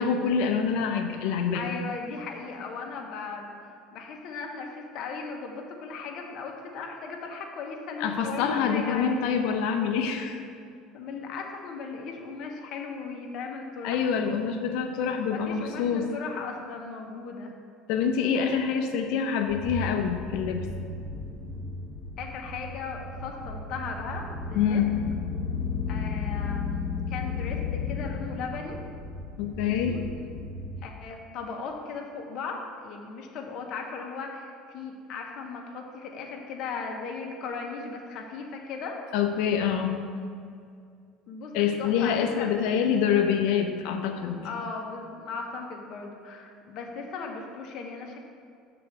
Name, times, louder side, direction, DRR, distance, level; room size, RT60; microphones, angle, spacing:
voice 1, 0.0-1.7 8.0-10.4 13.8-16.1 17.9-20.7 24.5-25.0 29.4-29.9 39.1-40.0 41.5-44.4, left 7 dB, 75° left, 5 dB, 0.8 m, -26 dB
voice 2, 1.5-9.3 10.9-14.1 15.3-17.5 22.2-24.8 25.9-28.8 29.6-30.0 30.8-39.0 41.3-41.5 41.8-42.5 44.4-48.2, left 4 dB, 55° left, 1 dB, 1.1 m, -37 dB
sound 1, 19.5-30.8, left 4 dB, 5° right, 1.3 m, -34 dB
6.8 x 3.9 x 6.0 m, 2.3 s
supercardioid pair, 115°, 0 cm